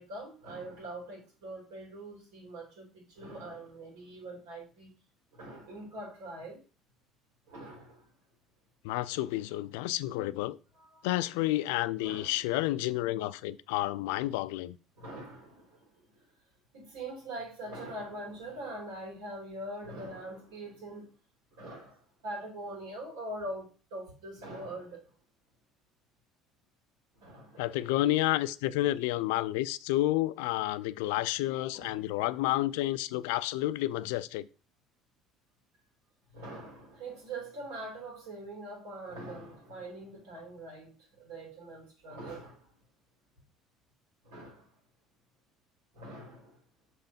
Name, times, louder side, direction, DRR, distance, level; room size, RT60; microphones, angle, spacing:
voice 1, 0.0-4.9 5.3-6.6 7.5-8.1 10.7-11.1 12.0-12.5 14.9-16.2 16.7-21.2 21.5-25.1 27.1-27.8 31.7-32.2 36.3-42.7 44.2-44.8 45.9-46.6, right 1 dB, 85° right, 4.6 m, -43 dB
voice 2, 8.8-10.6 11.0-14.8 27.6-34.5, left 16 dB, 85° left, 0.4 m, -30 dB
5.9 x 5.7 x 5.2 m
supercardioid pair, 80°, 0 cm